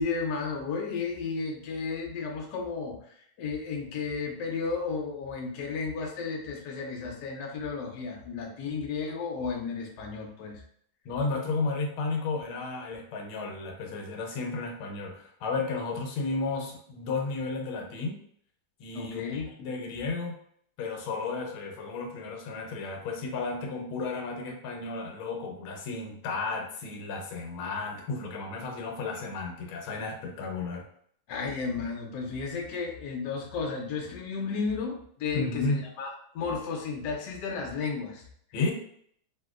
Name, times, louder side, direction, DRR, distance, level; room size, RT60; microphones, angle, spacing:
voice 1, 0.0-10.6 18.9-19.5 31.3-36.1 36.3-38.2, left 4 dB, 70° left, 0 dB, 1.1 m, -33 dB
voice 2, 11.0-18.2 18.8-20.3 20.8-30.9 35.3-35.9 38.5-38.7, left 3 dB, 85° left, 2 dB, 1.5 m, -33 dB
3.6 x 2.6 x 2.4 m, 0.64 s
omnidirectional pair, 2.3 m